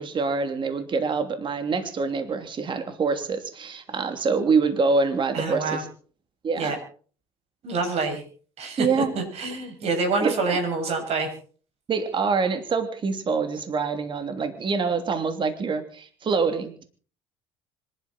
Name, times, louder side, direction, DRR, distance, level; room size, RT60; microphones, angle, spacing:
voice 1, 0.0-5.9 6.4-6.7 8.8-9.1 10.2-10.4 11.9-16.7, right 4 dB, 40° right, 8 dB, 3.0 m, -25 dB
voice 2, 5.3-5.8 6.6-6.8 7.6-8.2 8.6-11.3, right 3 dB, 55° right, 5 dB, 7.4 m, -27 dB
25.5 x 12.5 x 4.4 m, 0.43 s
hypercardioid pair, 65°, 12 cm